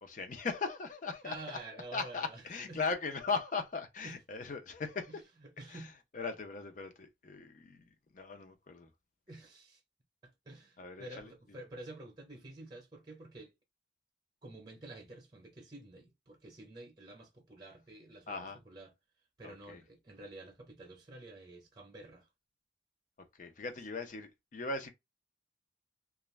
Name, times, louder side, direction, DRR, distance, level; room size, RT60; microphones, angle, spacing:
voice 1, 0.0-1.6 1.9-5.1 5.7-5.9 6.1-7.9 8.1-8.9 10.8-11.3 18.3-18.6 19.4-19.8 23.4-24.9, left 4 dB, 45° left, 0.5 m, -38 dB
voice 2, 1.2-2.8 4.0-4.2 5.1-5.9 9.3-9.8 10.2-13.5 14.4-18.9 19.4-22.3, right 2 dB, 25° right, 0.8 m, -50 dB
2.4 x 2.1 x 3.1 m
head